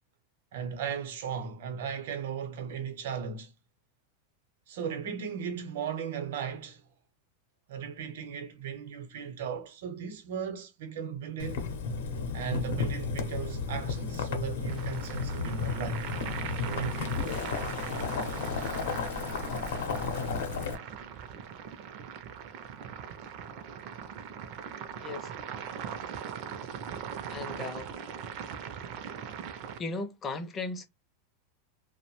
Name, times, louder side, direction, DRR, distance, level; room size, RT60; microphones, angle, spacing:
voice 1, 0.5-3.5 4.7-6.9 7.7-11.7 12.3-16.1 16.6-17.3, right 6 dB, 70° right, 0.7 m, -36 dB
Boiling, 11.4-20.7, left 5 dB, 80° left, 0.7 m, -33 dB
sound 1, 14.7-29.8, right 8 dB, 40° right, 0.4 m, -40 dB
voice 2, 25.0-25.3 27.3-27.9 29.8-30.9, left 3 dB, 20° left, 0.4 m, -36 dB
2.6 x 2.0 x 2.9 m
supercardioid pair, 160°, 0 cm